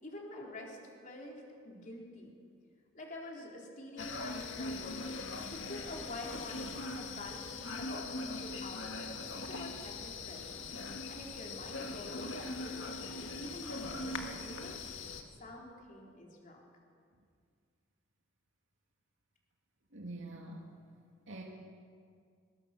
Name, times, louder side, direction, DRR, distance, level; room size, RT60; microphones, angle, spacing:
voice 1, 0.0-2.3 2.9-5.0 5.5-9.1 9.3-10.7 11.1-12.8 13.3-14.8 15.4-16.6, left 1 dB, 45° left, -1 dB, 4.0 m, -47 dB
sound 1, 4.0-15.2, left 3 dB, 85° left, 1.7 m, -41 dB
voice 2, 19.9-20.7 21.3-21.4, right 2 dB, 85° right, -1 dB, 2.3 m, -45 dB
22.0 x 20.0 x 6.1 m, 2.2 s
head